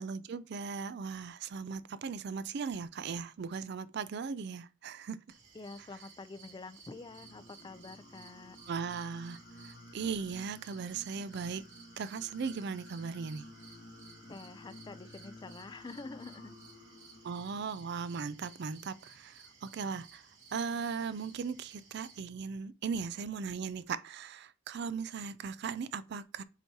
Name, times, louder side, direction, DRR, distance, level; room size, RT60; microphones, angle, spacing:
voice 1, 0.0-5.2 8.7-9.4 9.6-11.6 12.0-13.5 17.2-20.2 20.5-26.4, right 5 dB, 60° right, 0.4 m, -38 dB
sound 1, 5.3-22.2, right 5 dB, 80° right, 2.4 m, -58 dB
voice 2, 5.5-8.6 14.3-16.5, left 3 dB, 25° left, 0.4 m, -47 dB
Singing, 6.9-17.6, left 1 dB, 55° left, 0.9 m, -54 dB
7.9 x 4.6 x 2.8 m
head